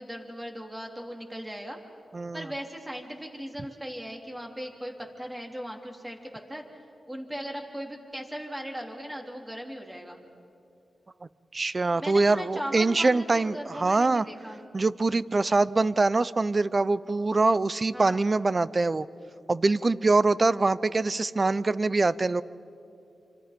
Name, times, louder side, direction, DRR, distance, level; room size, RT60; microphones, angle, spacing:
voice 1, 0.0-1.8 2.3-6.6 7.1-10.2 11.9-14.6 17.9-18.2, equal, 15° right, 2 dB, 3.2 m, -38 dB
voice 2, 2.1-2.5 11.5-14.3 14.7-19.1 19.5-22.4, right 3 dB, 35° right, 18 dB, 0.6 m, -24 dB
26.5 x 26.0 x 5.2 m, 2.6 s
cardioid pair, 70°, 0 cm